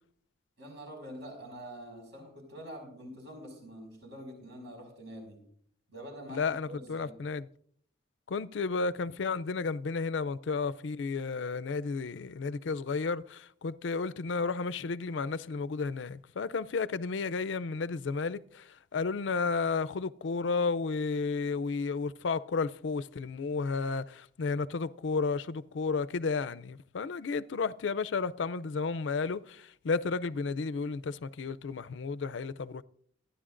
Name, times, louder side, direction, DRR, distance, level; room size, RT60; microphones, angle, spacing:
voice 1, 0.6-5.4 5.9-7.2, equal, 65° right, 5.5 m, -46 dB
voice 2, 6.3-7.4 8.3-32.8, left 4 dB, 85° left, 0.5 m, -32 dB
26.0 x 10.0 x 2.5 m
head